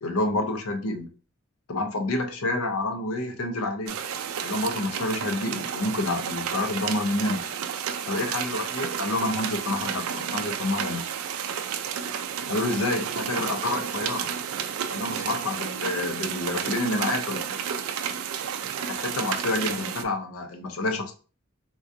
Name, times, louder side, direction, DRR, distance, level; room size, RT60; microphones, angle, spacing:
voice 1, 0.0-1.1 1.7-4.0 4.4-7.4 8.1-11.1 12.5-14.3 14.9-17.5 18.8-21.1, left 2 dB, 85° left, 5 dB, 0.6 m, -28 dB
sound 1, 3.9-20.0, right 8 dB, 80° right, 0.4 m, -31 dB
3.7 x 2.6 x 2.5 m, 0.38 s
head